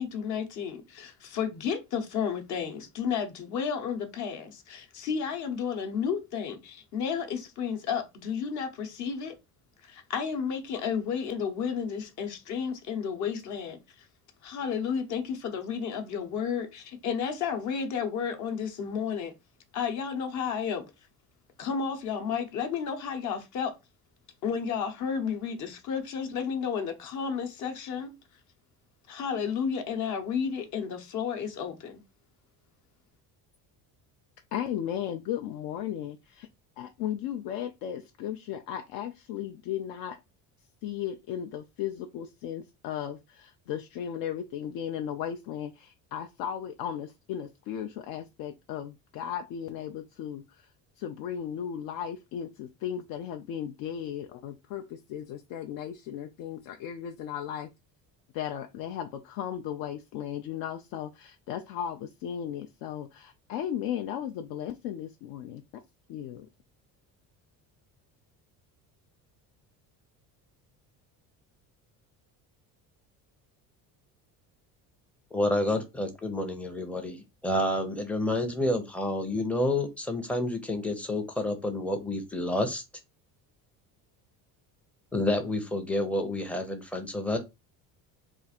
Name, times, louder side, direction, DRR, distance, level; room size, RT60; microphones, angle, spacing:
voice 1, 0.0-9.3 9.8-14.1 14.4-19.3 19.7-20.8 21.6-23.7 24.4-28.1 29.1-32.0, left 6 dB, 50° left, 0.9 m, -32 dB
voice 2, 34.5-36.5 36.8-40.2 40.8-50.7 51.0-57.7 58.3-65.6 66.1-66.5, left 9 dB, 70° left, 0.5 m, -36 dB
voice 3, 75.3-82.8 85.1-87.4, left 1 dB, 5° left, 0.5 m, -29 dB
3.5 x 2.5 x 4.2 m
cardioid pair, 165°, 36 cm